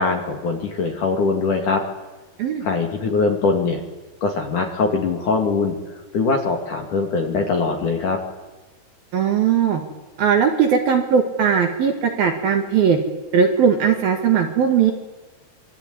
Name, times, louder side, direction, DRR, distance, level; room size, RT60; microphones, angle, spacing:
voice 1, 0.0-1.8 2.6-3.8 4.2-5.8 6.1-8.2, left 4 dB, 45° left, 3 dB, 3.3 m, -22 dB
voice 2, 9.1-9.8 10.2-13.0 13.3-14.9, right 7 dB, 55° right, 4 dB, 3.2 m, -18 dB
25.5 x 24.0 x 9.6 m, 1.1 s
omnidirectional pair, 5.8 m